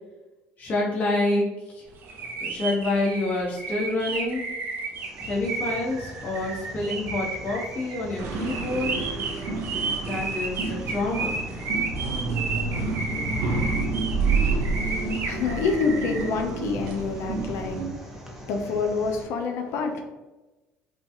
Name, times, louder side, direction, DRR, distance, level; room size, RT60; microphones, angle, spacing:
voice 1, 0.6-1.8 2.4-4.4 5.3-9.0 10.0-11.4, left 2 dB, 40° left, -5 dB, 1.5 m, -27 dB
sound 1, 2.0-16.3, right 4 dB, 55° right, 1.3 m, -33 dB
sound 2, 4.9-19.2, left 1 dB, 5° right, 0.9 m, -43 dB
sound 3, 8.2-17.9, right 4 dB, 80° right, 0.9 m, -29 dB
voice 2, 14.7-20.0, left 4 dB, 70° left, 4 dB, 0.7 m, -28 dB
5.0 x 2.4 x 3.0 m, 1.1 s
supercardioid pair, 90°, 4 cm